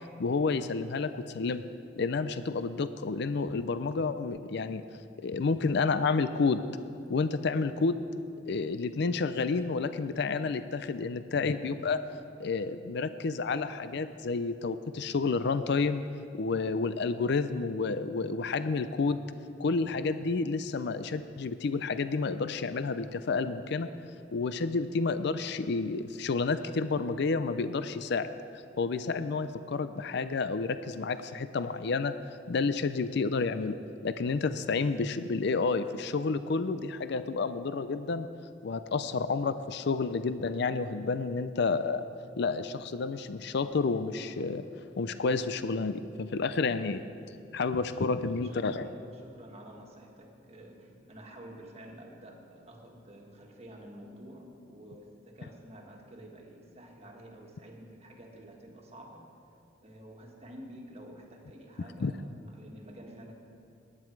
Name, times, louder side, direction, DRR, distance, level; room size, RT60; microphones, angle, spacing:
voice 1, 0.2-1.6 2.0-4.8 5.2-6.6 7.1-8.0 8.5-12.0 12.4-16.0 16.4-19.2 19.6-23.9 24.3-28.3 28.8-32.1 32.5-33.8 34.0-38.3 38.6-42.0 42.4-44.6 45.0-47.0 47.5-48.9 62.0-62.1, left 4 dB, 65° left, 12 dB, 0.5 m, -30 dB
voice 2, 48.0-59.3 59.8-63.3, right 1 dB, 35° right, 0 dB, 1.8 m, -50 dB
18.5 x 9.9 x 4.6 m, 2.6 s
head